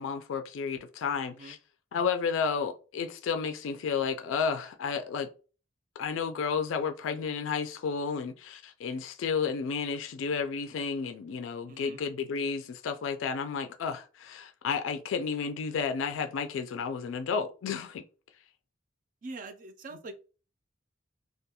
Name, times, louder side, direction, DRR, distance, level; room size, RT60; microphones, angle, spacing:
voice 1, 0.0-1.6 1.9-5.3 6.0-18.0, left 5 dB, 80° left, 0.3 m, -32 dB
voice 2, 11.7-12.0 19.2-20.1, right 2 dB, 40° right, 0.3 m, -43 dB
2.3 x 2.2 x 2.8 m
head